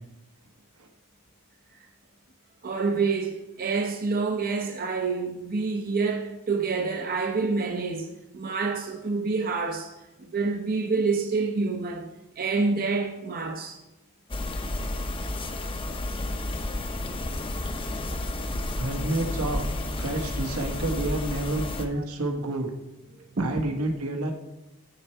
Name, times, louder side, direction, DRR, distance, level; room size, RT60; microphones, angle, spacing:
voice 1, 2.6-8.1 8.3-9.9 10.3-12.1 12.4-13.8 21.9-22.0 23.4-23.5, right 4 dB, 40° right, 0.6 m, -27 dB
sound 1, 14.3-21.9, left 1 dB, 25° left, 0.6 m, -31 dB
voice 2, 18.8-19.6 19.9-22.7 23.4-24.3, right 1 dB, 75° right, 1.4 m, -29 dB
13.5 x 4.5 x 4.4 m
head